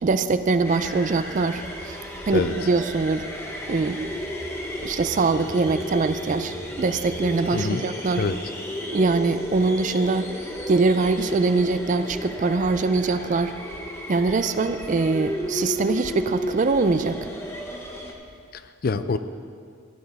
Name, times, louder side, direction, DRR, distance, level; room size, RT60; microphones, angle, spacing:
voice 1, 0.0-2.0 2.3-3.3 3.7-4.1 4.8-8.2 8.9-10.3 10.7-13.5 14.1-17.3, right 3 dB, 40° right, 11 dB, 0.3 m, -23 dB
sound 1, 0.6-18.1, left 1 dB, 10° left, 0.9 m, -33 dB
voice 2, 7.5-7.9 8.2-8.4 18.5-19.2, left 4 dB, 45° left, 11 dB, 0.4 m, -25 dB
15.0 x 9.9 x 3.5 m, 2.1 s
head